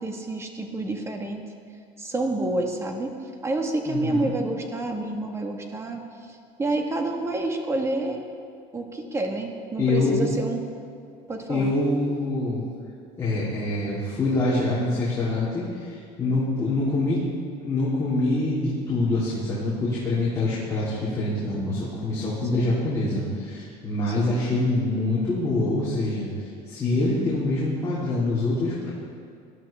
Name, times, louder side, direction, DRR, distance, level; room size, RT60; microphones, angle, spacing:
voice 1, 0.0-1.4 2.0-3.1 3.4-6.0 6.3-8.2 8.7-10.6 11.3-11.7 22.5-22.7 24.1-24.3, right 2 dB, 20° right, 3 dB, 1.5 m, -28 dB
voice 2, 3.9-4.3 9.8-10.3 11.5-12.6 13.2-17.2 17.6-26.3 26.7-28.9, left 2 dB, 20° left, -10 dB, 3.4 m, -25 dB
18.5 x 12.5 x 3.6 m, 2.4 s
cardioid pair, 140°, 15 cm